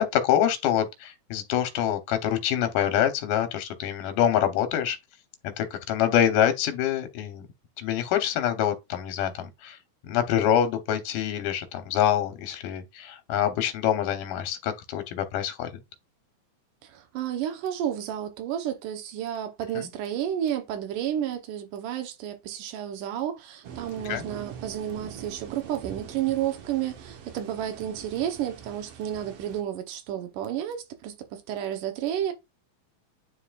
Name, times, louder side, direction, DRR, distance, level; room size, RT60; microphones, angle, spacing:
voice 1, 0.0-5.0 5.4-7.4 7.8-9.8 10.0-15.7 19.8-19.9 24.1-24.3, left 10 dB, 80° left, 2.5 m, -25 dB
voice 2, 16.8-32.3, right 10 dB, 85° right, 2.6 m, -31 dB
sound 1, 23.6-29.6, right 7 dB, 60° right, 1.8 m, -43 dB
9.6 x 4.2 x 2.4 m
omnidirectional pair, 3.7 m